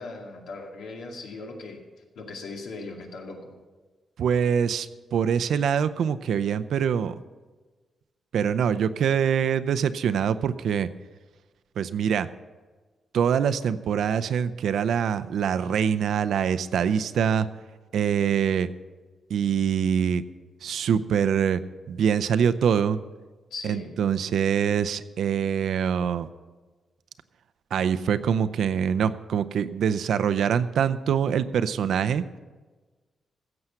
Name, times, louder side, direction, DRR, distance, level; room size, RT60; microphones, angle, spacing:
voice 1, 0.0-1.8 2.2-3.5 23.5-23.9, left 3 dB, 85° left, 1 dB, 2.2 m, -38 dB
voice 2, 4.2-7.1 8.3-10.9 11.8-12.3 13.1-17.5 17.9-18.7 19.3-20.2 20.6-21.6 21.9-23.0 23.6-26.3 27.7-32.2, right 8 dB, 75° right, 13 dB, 0.6 m, -24 dB
15.5 x 7.9 x 5.8 m, 1.3 s
wide cardioid pair, 155°, 0 cm